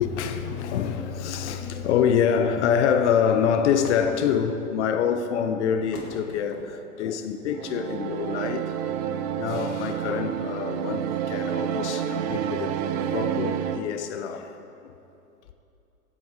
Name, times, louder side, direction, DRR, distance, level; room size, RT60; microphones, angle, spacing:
voice 1, 0.0-8.7 9.4-12.8 13.1-14.6 14.8-14.9, left 7 dB, 50° left, 0.9 m, -26 dB
sound 1, 0.8-13.6, left 2 dB, 80° left, 2.4 m, -46 dB
sound 2, 7.5-13.8, right 9 dB, 30° right, 0.5 m, -29 dB
16.0 x 7.8 x 5.0 m
figure-of-eight pair, 110°, 45 cm